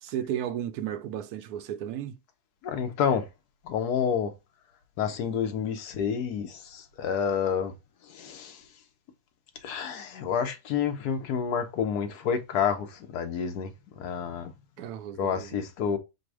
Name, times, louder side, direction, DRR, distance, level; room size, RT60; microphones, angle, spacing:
voice 1, 0.0-2.2 14.8-15.6, right 10 dB, 75° right, 1.0 m, -34 dB
voice 2, 2.6-3.3 3.6-4.3 5.0-7.7 8.0-8.7 9.6-14.5 15.2-16.0, left 7 dB, 80° left, 1.3 m, -29 dB
5.1 x 2.1 x 4.6 m
omnidirectional pair, 1.7 m